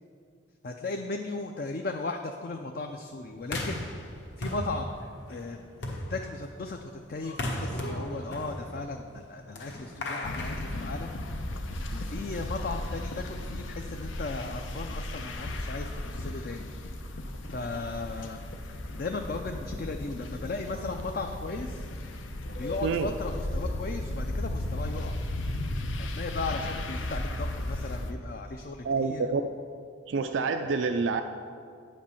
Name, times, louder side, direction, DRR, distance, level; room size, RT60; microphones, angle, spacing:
voice 1, 0.6-3.9 4.4-4.9 5.3-11.2 11.4-11.5 11.9-16.7 17.5-21.8 22.6-25.1 26.0-29.2, left 3 dB, 50° left, 4 dB, 0.4 m, -36 dB
sound 1, 3.4-11.5, left 1 dB, 65° left, 1.3 m, -37 dB
sound 2, 10.2-28.1, left 1 dB, 85° left, 0.8 m, -35 dB
voice 2, 22.8-23.1 28.8-29.4 30.1-31.2, right 4 dB, 75° right, 7 dB, 0.4 m, -27 dB
8.9 x 5.2 x 7.0 m, 2.3 s
head